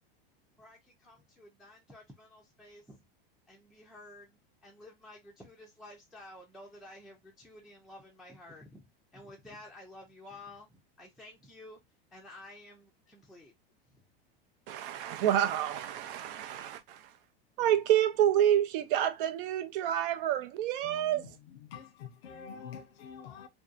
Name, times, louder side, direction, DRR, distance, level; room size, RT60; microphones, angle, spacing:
voice 1, 0.6-3.0 3.5-11.8 12.1-13.5 13.9-14.0, left 1 dB, ahead, 0.4 m, -52 dB
voice 2, 14.7-17.0 17.6-21.3, right 11 dB, 60° right, 0.5 m, -28 dB
voice 3, 20.8-23.5, left 7 dB, 80° left, 0.7 m, -47 dB
2.6 x 2.2 x 2.4 m
supercardioid pair, 120°, 30 cm